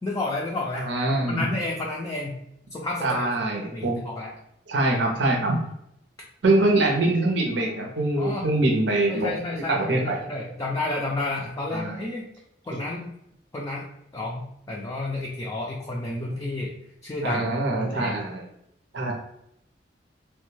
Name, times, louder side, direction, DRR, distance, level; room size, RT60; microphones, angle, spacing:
voice 1, 0.0-2.4 2.7-3.3 3.7-4.3 8.2-8.5 9.1-12.3 12.7-13.1 13.5-13.9 14.1-16.7 17.0-18.2, left 2 dB, 20° left, -3 dB, 0.3 m, -31 dB
voice 2, 0.8-1.4 3.0-4.0 4.7-5.6 6.4-9.3 9.7-10.2 11.7-12.0 12.7-12.8 17.2-18.5 18.9-19.1, right 2 dB, 85° right, 1 dB, 0.7 m, -24 dB
3.0 x 2.2 x 3.1 m, 0.78 s
head